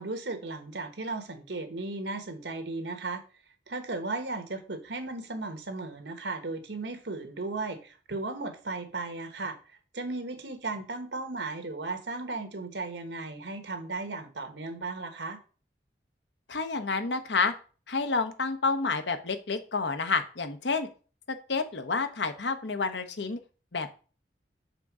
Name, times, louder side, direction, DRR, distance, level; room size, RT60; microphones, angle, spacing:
voice 1, 0.0-3.2 3.7-15.4, right 3 dB, 90° right, 7 dB, 1.3 m, -36 dB
voice 2, 16.5-17.5 17.9-20.9 21.3-23.4 23.7-23.9, left 4 dB, 85° left, 8 dB, 0.9 m, -29 dB
6.7 x 3.8 x 6.0 m, 0.37 s
head